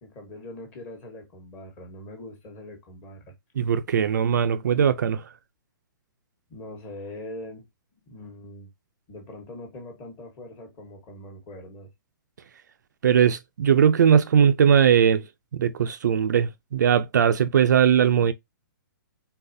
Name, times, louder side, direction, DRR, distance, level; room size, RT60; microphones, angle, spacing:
voice 1, 0.0-3.3 6.5-7.7 8.1-8.7 9.1-11.9, left 1 dB, 15° left, 1.2 m, -42 dB
voice 2, 3.6-5.2 13.0-15.2 15.5-18.3, right 8 dB, 55° right, 0.5 m, -20 dB
4.0 x 4.0 x 2.6 m
hypercardioid pair, 180°, 12 cm